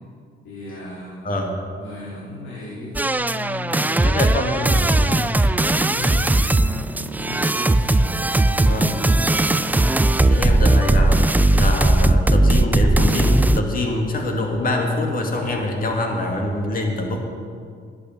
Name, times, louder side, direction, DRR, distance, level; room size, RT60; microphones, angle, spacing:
voice 1, 0.4-1.3 1.7-8.9, left 2 dB, 80° left, -9 dB, 4.1 m, -37 dB
voice 2, 1.2-1.6 4.0-5.3 6.0-6.3 8.6-9.0 10.2-11.2 11.5-17.2, left 2 dB, 45° left, 2 dB, 2.3 m, -24 dB
sound 1, 3.0-13.6, right 2 dB, 10° right, 0.4 m, -18 dB
11.0 x 8.7 x 7.9 m, 2.2 s
cardioid pair, 90°, 20 cm